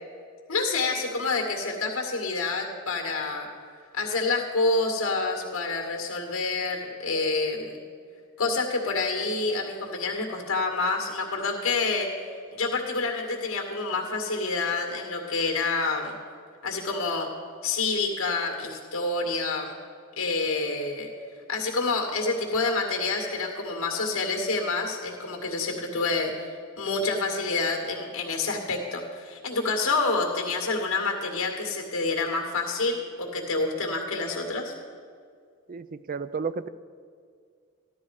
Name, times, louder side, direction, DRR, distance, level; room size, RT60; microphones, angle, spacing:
voice 1, 0.5-3.5 3.9-7.8 8.4-12.1 12.5-16.2 16.6-17.3 17.6-19.8 20.2-21.1 21.5-26.5 26.8-34.7, left 3 dB, 75° left, 1 dB, 2.1 m, -28 dB
voice 2, 35.7-36.7, right 5 dB, 40° right, 13 dB, 0.4 m, -32 dB
14.5 x 12.5 x 4.9 m, 2.1 s
head